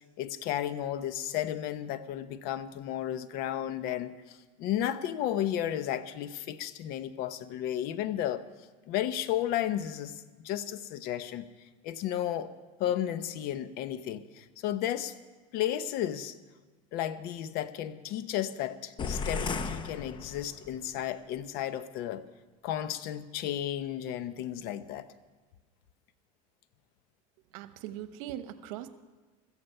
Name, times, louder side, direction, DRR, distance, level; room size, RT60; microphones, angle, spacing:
voice 1, 0.2-8.4 8.9-11.5 11.8-12.5 12.8-15.1 15.5-16.4 16.9-22.3 22.6-25.1, left 11 dB, 60° left, 13 dB, 1.0 m, -33 dB
sound 1, 19.0-20.8, left 4 dB, 25° left, 0.8 m, -35 dB
voice 2, 27.5-28.9, right 12 dB, 75° right, 11 dB, 1.1 m, -40 dB
16.5 x 14.0 x 5.6 m, 1.3 s
supercardioid pair, 120°, 17 cm